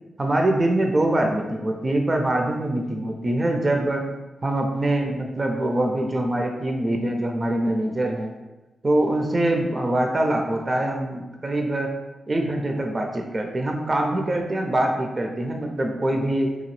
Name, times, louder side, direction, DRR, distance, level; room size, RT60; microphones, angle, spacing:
voice 1, 0.2-4.0 4.4-8.3 8.8-11.9 12.3-16.6, right 1 dB, 35° right, 3 dB, 0.4 m, -24 dB
2.8 x 2.2 x 3.1 m, 1.1 s
cardioid pair, 55°, 0 cm